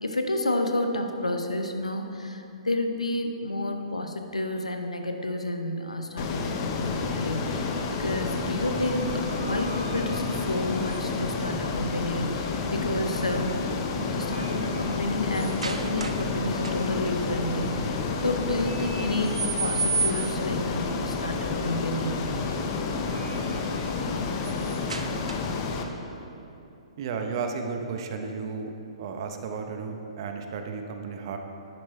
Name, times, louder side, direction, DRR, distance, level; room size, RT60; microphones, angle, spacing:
voice 1, 0.0-13.5 14.1-22.2, left 1 dB, 90° left, 5 dB, 0.9 m, -30 dB
Ocean, 6.2-25.8, left 4 dB, 35° left, 0.8 m, -30 dB
sound 1, 8.5-11.4 13.1-13.5 13.9-16.3 16.6-17.1 18.6-20.5 22.8-25.7, right 4 dB, 80° right, 0.6 m, -36 dB
voice 2, 27.0-28.7 29.0-31.4, right 5 dB, 45° right, 5 dB, 1.0 m, -33 dB
10.5 x 6.5 x 4.4 m, 2.9 s
figure-of-eight pair, 120°, 3 cm